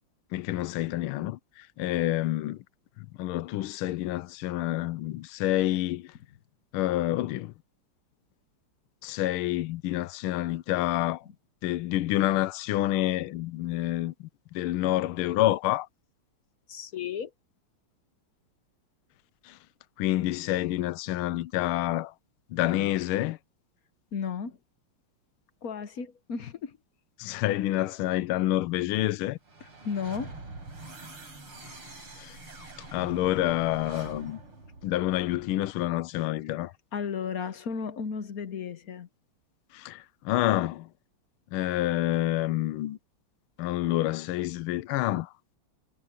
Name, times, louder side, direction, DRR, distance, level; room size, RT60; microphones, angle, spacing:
voice 1, 0.3-2.6 3.2-6.1 6.7-7.5 9.0-11.2 11.6-15.9 19.4-19.6 20.0-22.1 22.5-23.4 27.2-29.4 32.2-32.4 32.9-34.4 34.8-36.7 39.7-40.9 41.5-43.0 43.6-45.3, left 15 dB, 80° left, 1.5 m, -28 dB
voice 2, 16.7-17.3 24.1-24.6 25.6-26.7 29.8-30.4 36.9-39.1, left 6 dB, 50° left, 1.3 m, -34 dB
sound 1, 29.4-35.7, right 2 dB, 85° right, 7.1 m, -45 dB
omnidirectional pair, 2.4 m